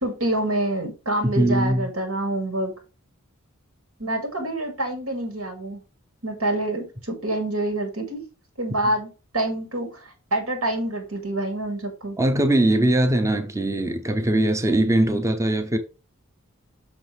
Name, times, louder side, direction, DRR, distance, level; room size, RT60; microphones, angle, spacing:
voice 1, 0.0-2.7 4.0-5.8 6.2-8.2 8.6-12.2, right 1 dB, 75° right, 2.3 m, -27 dB
voice 2, 1.4-1.9 12.2-15.8, right 1 dB, 15° right, 0.7 m, -21 dB
6.2 x 6.1 x 3.3 m
head